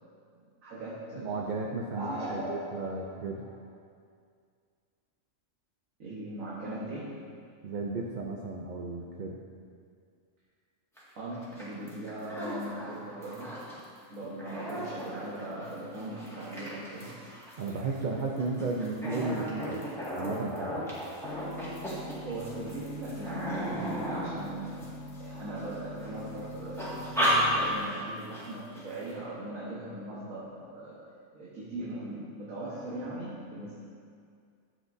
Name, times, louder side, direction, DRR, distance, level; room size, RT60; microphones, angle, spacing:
voice 1, 0.6-1.3 1.9-3.1 3.4-3.5 6.0-7.2 11.2-13.5 14.1-17.4 22.1-24.9 25.2-31.0 31.3-33.7, right 1 dB, 80° right, -8 dB, 1.8 m, -39 dB
voice 2, 1.2-3.5 7.6-9.4 17.6-19.9 20.1-20.9, right 3 dB, 50° right, -1 dB, 0.6 m, -34 dB
sound 1, 11.0-11.1 11.3-13.8 14.2-25.6 26.0-26.4 26.8-28.0 28.3-28.4 28.7-29.1, equal, ahead, 1.8 m, -34 dB
sound 2, 21.2-27.8, left 1 dB, 85° left, 1.1 m, -43 dB
11.5 x 7.6 x 2.7 m, 2.2 s
omnidirectional pair, 1.4 m